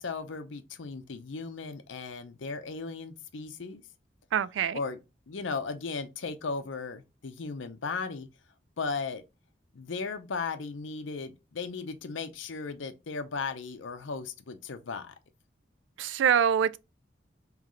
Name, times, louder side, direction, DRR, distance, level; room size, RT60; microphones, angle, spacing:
voice 1, 0.0-3.8 4.7-5.0 5.3-8.3 8.8-9.2 9.7-15.1, left 4 dB, 90° left, 0.6 m, -36 dB
voice 2, 4.3-4.8 16.0-16.8, right 8 dB, 80° right, 0.3 m, -25 dB
3.7 x 3.1 x 3.1 m
head